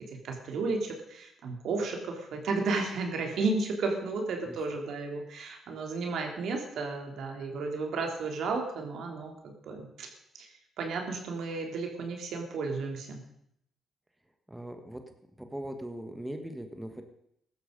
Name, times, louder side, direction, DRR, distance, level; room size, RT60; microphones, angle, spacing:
voice 1, 0.2-10.1 10.4-10.5 10.8-13.2, right 3 dB, 70° right, 3 dB, 3.4 m, -33 dB
voice 2, 14.5-15.0 15.4-17.0, right 1 dB, 5° right, 6 dB, 1.6 m, -39 dB
15.5 x 12.5 x 5.3 m, 0.75 s
cardioid pair, 90°, 0 cm